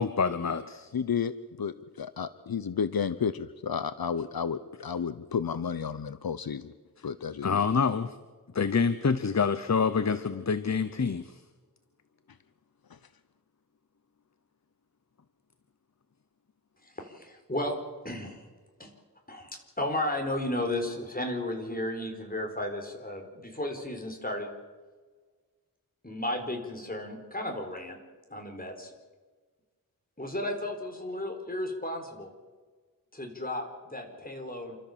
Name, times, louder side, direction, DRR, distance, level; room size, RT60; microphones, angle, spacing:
voice 1, 0.0-0.9 7.4-8.2 8.5-11.4, left 5 dB, 50° left, 12 dB, 0.9 m, -27 dB
voice 2, 0.9-1.3 1.6-6.7 7.0-7.6, left 7 dB, 75° left, 13 dB, 0.8 m, -32 dB
voice 3, 16.8-17.8 18.0-18.5 18.8-18.9 19.3-19.5 19.8-24.5 26.0-28.0 28.3-28.9 30.2-32.3 33.1-34.8, left 1 dB, 25° left, 3 dB, 4.5 m, -34 dB
29.0 x 13.5 x 7.4 m, 1.4 s
wide cardioid pair, 75°, 36 cm